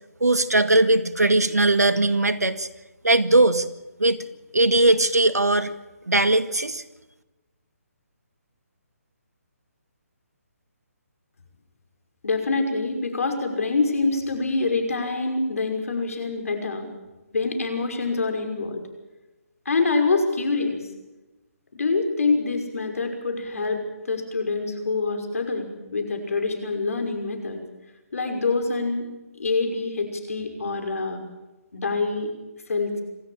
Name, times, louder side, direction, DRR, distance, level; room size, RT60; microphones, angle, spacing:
voice 1, 0.2-2.7 3.0-3.7 4.0-4.2 4.5-5.7 6.1-6.8, right 2 dB, 90° right, 11 dB, 2.1 m, -19 dB
voice 2, 12.2-16.9 17.3-18.8 19.7-20.8 21.7-27.6 28.1-29.1 29.4-31.2 31.7-32.3 32.7-33.0, left 3 dB, 65° left, 6 dB, 5.8 m, -25 dB
27.0 x 14.0 x 9.0 m, 1.1 s
figure-of-eight pair, 145°, 8 cm